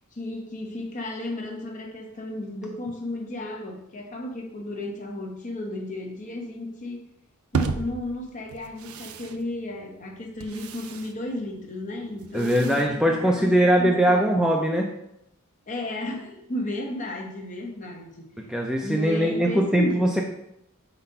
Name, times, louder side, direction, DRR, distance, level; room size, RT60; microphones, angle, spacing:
voice 1, 0.1-7.1 7.5-14.4 15.7-18.3 18.8-20.2, left 1 dB, 35° left, 1 dB, 1.0 m, -34 dB
sound 1, 7.5-13.8, right 5 dB, 85° right, 0.5 m, -35 dB
voice 2, 12.3-14.9 18.5-20.2, equal, 5° right, 0 dB, 0.4 m, -21 dB
4.3 x 4.1 x 5.5 m, 0.79 s
head